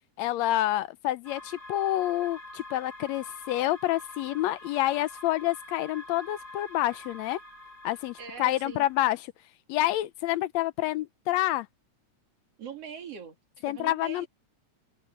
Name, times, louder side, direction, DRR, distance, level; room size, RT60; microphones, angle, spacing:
voice 1, 0.2-7.4 7.8-9.2 9.7-11.7 13.6-14.3, left 15 dB, 75° left, 1.8 m, -28 dB
sound 1, 1.2-9.0, left 1 dB, 35° left, 2.5 m, -46 dB
voice 2, 8.2-8.9 12.6-14.3, right 7 dB, 55° right, 3.4 m, -42 dB
omnidirectional pair, 3.3 m